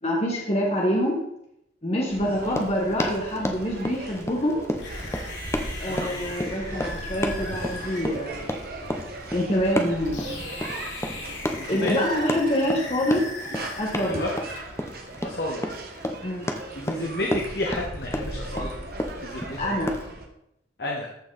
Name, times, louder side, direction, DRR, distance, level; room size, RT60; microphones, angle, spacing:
voice 1, 0.0-1.2 1.8-4.6 5.3-5.4 5.8-8.5 9.3-10.4 11.7-13.3 13.8-14.2 16.2-16.5 19.6-19.9, equal, 35° left, -2 dB, 1.5 m, -26 dB
sound 1, 2.1-20.3, right 1 dB, 50° right, 1.5 m, -38 dB
Run, 2.4-20.1, left 1 dB, 15° left, 0.8 m, -32 dB
sound 2, 4.8-14.6, left 2 dB, 85° left, 2.8 m, -39 dB
voice 2, 5.9-6.2 11.5-11.9 14.0-14.3 15.2-15.6 16.7-18.7 19.2-19.6 20.8-21.1, left 1 dB, 55° left, -2 dB, 1.5 m, -31 dB
14.0 x 4.8 x 4.1 m, 0.77 s
head